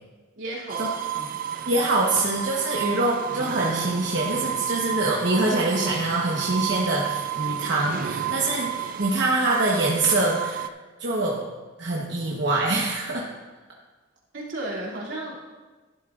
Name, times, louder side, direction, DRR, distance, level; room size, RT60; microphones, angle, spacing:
voice 1, 0.4-1.4 14.3-15.4, right 1 dB, 90° right, -5 dB, 2.6 m, -34 dB
sound 1, 0.7-10.7, right 10 dB, 45° right, 0.3 m, -31 dB
voice 2, 1.7-10.6 11.0-11.4 11.8-13.2, right 2 dB, 65° right, -3 dB, 1.1 m, -24 dB
11.5 x 11.0 x 2.5 m, 1.3 s
head